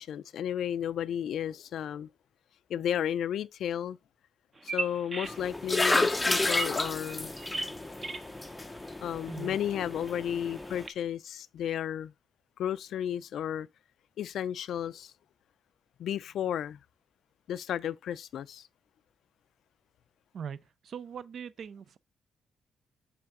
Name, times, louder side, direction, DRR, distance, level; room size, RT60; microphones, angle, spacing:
voice 1, 0.0-2.1 2.7-4.0 4.6-7.3 9.0-12.1 12.6-13.7 14.2-15.1 16.0-16.8 17.5-18.7, left 10 dB, 75° left, 0.3 m, -33 dB
Bird vocalization bird call bird song, 4.6-10.9, right 3 dB, 30° right, 0.7 m, -41 dB
sound 1, 5.2-10.9, left 2 dB, 15° left, 0.5 m, -31 dB
voice 2, 20.8-22.0, right 7 dB, 60° right, 0.4 m, -40 dB
7.8 x 3.3 x 3.7 m
cardioid pair, 120°, 0 cm